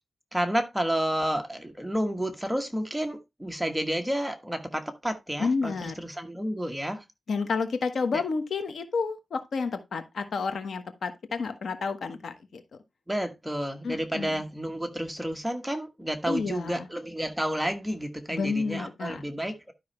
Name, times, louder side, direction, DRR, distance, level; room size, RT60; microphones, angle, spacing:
voice 1, 0.3-7.0 8.1-8.2 13.1-19.7, equal, 5° right, 1.3 m, -30 dB
voice 2, 5.4-5.9 7.3-12.6 13.8-14.4 16.3-16.9 18.3-19.2, left 4 dB, 90° left, 1.2 m, -30 dB
12.0 x 5.6 x 3.2 m
wide cardioid pair, 135°, 0 cm